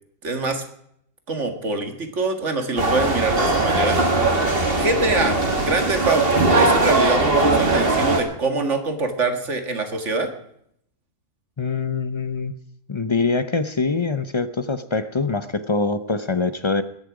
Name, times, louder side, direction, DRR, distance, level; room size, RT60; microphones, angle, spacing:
voice 1, 0.2-0.6 1.3-4.0 4.4-10.3, right 3 dB, 60° right, 6 dB, 2.1 m, -24 dB
sound 1, 2.8-8.2, right 2 dB, 45° right, 2.3 m, -19 dB
voice 2, 11.6-12.5 12.9-16.8, left 4 dB, 35° left, 12 dB, 0.4 m, -24 dB
21.5 x 10.0 x 4.9 m, 0.70 s
omnidirectional pair, 1.4 m